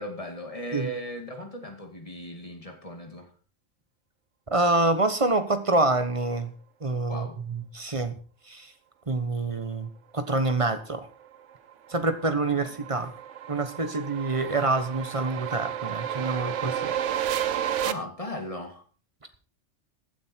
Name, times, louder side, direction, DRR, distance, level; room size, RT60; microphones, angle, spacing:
voice 1, 0.0-3.3 7.1-7.4 12.5-12.7 17.8-18.8, equal, 30° left, 4 dB, 2.5 m, -37 dB
voice 2, 4.5-6.5 6.8-8.1 8.5-8.7 9.1-11.1 11.9-13.1 13.5-16.9, right 2 dB, 30° right, 10 dB, 1.2 m, -26 dB
sound 1, 11.3-17.9, right 10 dB, 85° right, 1.2 m, -32 dB
15.5 x 9.5 x 4.5 m, 0.39 s
omnidirectional pair, 1.2 m